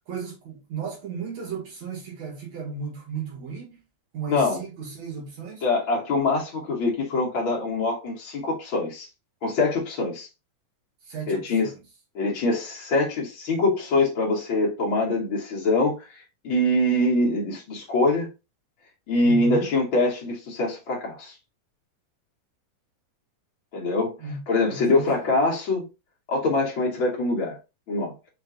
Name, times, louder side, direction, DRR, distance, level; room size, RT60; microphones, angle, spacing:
voice 1, 0.1-3.8 4.1-5.7 11.0-11.8 19.2-19.7 24.2-24.4 24.7-25.3, right 5 dB, 60° right, 2.2 m, -35 dB
voice 2, 4.3-4.6 5.6-9.1 9.4-10.3 11.3-11.7 12.1-18.3 19.1-21.3 23.7-24.2 24.5-25.9 26.3-27.6 27.9-28.1, left 2 dB, 80° left, 1.1 m, -24 dB
5.8 x 2.5 x 3.7 m
omnidirectional pair, 4.1 m